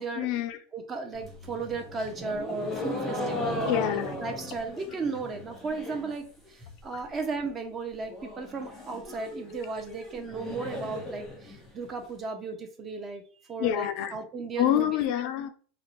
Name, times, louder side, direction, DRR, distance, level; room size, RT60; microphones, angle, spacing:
voice 1, 0.2-0.6 3.7-4.1 6.9-7.0 13.6-14.2 14.6-15.5, left 11 dB, 55° left, 0.3 m, -27 dB
voice 2, 0.7-3.7 4.2-13.2 13.5-15.0, right 4 dB, 25° right, 0.5 m, -35 dB
sound 1, 1.1-6.2 6.5-7.0 7.3-7.4 7.6-7.7 8.0-12.0, left 1 dB, ahead, 0.9 m, -37 dB
2.5 x 2.0 x 2.9 m
supercardioid pair, 135°, 0 cm